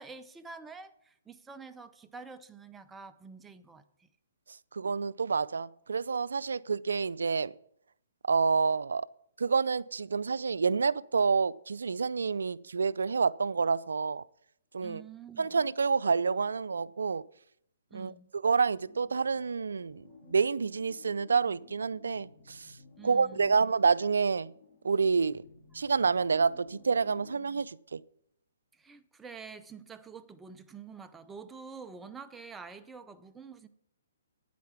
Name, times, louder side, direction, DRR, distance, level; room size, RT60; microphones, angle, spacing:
voice 1, 0.0-4.1 14.8-15.5 17.9-18.3 23.0-23.6 28.7-33.7, right 5 dB, 10° right, 0.6 m, -47 dB
voice 2, 4.7-7.5 8.3-9.1 9.4-14.2 14.7-15.0 15.4-17.2 17.9-22.7 23.0-24.5 24.8-25.4 25.7-28.0, right 5 dB, 85° right, 0.4 m, -28 dB
sound 1, 18.8-27.6, left 5 dB, 45° left, 2.1 m, -56 dB
9.6 x 8.3 x 5.9 m
hypercardioid pair, 145°, 0 cm